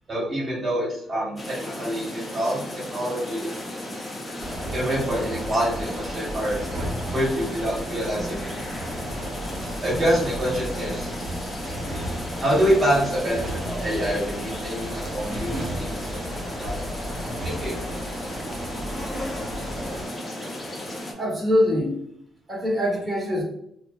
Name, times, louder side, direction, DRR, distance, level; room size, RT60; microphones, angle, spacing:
voice 1, 0.1-3.5 4.7-6.6 7.1-8.5 9.8-11.1 12.4-16.2 16.6-16.8 17.2-17.8, equal, 35° right, -5 dB, 1.2 m, -26 dB
sound 1, 1.4-21.1, left 1 dB, 25° left, 0.6 m, -35 dB
sound 2, 4.4-20.1, right 1 dB, 65° right, 0.7 m, -34 dB
voice 2, 21.1-22.0 22.5-23.4, left 1 dB, 10° right, -5 dB, 1.2 m, -23 dB
2.6 x 2.3 x 2.2 m, 0.71 s
cardioid pair, 90°, 0 cm